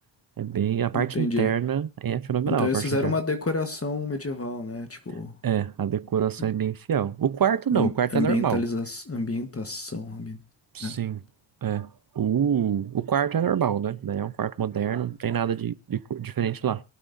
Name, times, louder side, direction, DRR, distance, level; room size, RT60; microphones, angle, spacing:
voice 1, 0.4-3.2 5.4-8.6 10.7-11.2 11.6-11.9 12.1-16.8, right 8 dB, 45° right, 0.7 m, -26 dB
voice 2, 0.9-1.5 2.5-5.3 6.4-6.5 7.7-10.4 10.8-11.0, left 3 dB, 30° left, 1.3 m, -29 dB
23.0 x 8.8 x 2.6 m
cardioid pair, 70°, 47 cm